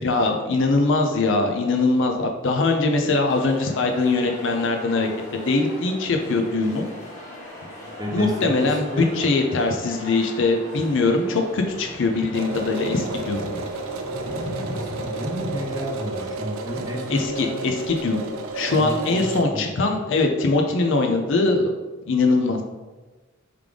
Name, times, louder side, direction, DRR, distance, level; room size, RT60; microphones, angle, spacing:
voice 1, 0.0-5.1 5.5-6.9 8.1-13.4 17.1-18.2 18.5-21.7 22.1-22.6, left 3 dB, 65° left, 4 dB, 0.5 m, -22 dB
sound 1, 3.3-18.8, left 1 dB, 40° left, 1.4 m, -39 dB
voice 2, 7.6-9.2 14.7-17.7 18.7-20.0, equal, 20° right, 1 dB, 0.5 m, -33 dB
sound 2, 12.3-19.4, right 2 dB, 75° right, 0.4 m, -32 dB
3.6 x 3.4 x 3.3 m, 1.2 s
head